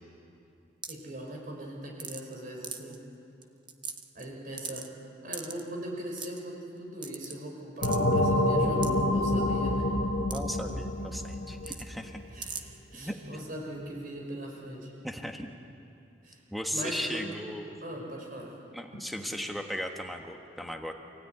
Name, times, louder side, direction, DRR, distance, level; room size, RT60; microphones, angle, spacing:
sound 1, 0.8-1.1 2.0-2.3 2.6-3.0 3.4-3.5 3.7-4.2 4.6-4.9 5.3-5.6 6.2-6.4 7.0-7.3 7.8-8.0 8.8-8.9 10.3-10.4 10.7-10.8 11.6-11.8 12.4-12.6, right 6 dB, 25° right, 1.1 m, -38 dB
voice 1, 0.9-3.0 4.1-4.9 5.2-9.9 12.3-14.9 16.2-16.4 16.7-17.2 17.8-18.5, right 1 dB, 50° right, 0 dB, 6.0 m, -40 dB
sound 2, 7.8-12.2, left 1 dB, 65° left, 1.4 m, -27 dB
voice 2, 10.3-12.2 12.9-13.5 15.0-15.5 16.5-17.8 18.7-20.9, equal, ahead, 2 dB, 1.4 m, -37 dB
27.5 x 16.5 x 9.7 m, 2.8 s
head